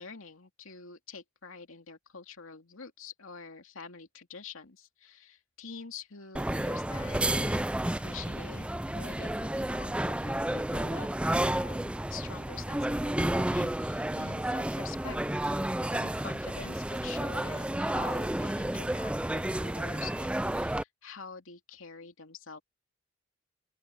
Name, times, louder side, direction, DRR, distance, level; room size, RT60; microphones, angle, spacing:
voice 1, 0.0-11.1 11.4-15.2 15.9-22.6, left 5 dB, 85° left, 2.6 m, -46 dB
sound 1, 6.4-20.8, right 1 dB, 5° right, 0.4 m, -31 dB
sound 2, 14.6-20.8, right 8 dB, 50° right, 2.6 m, -60 dB
open air
head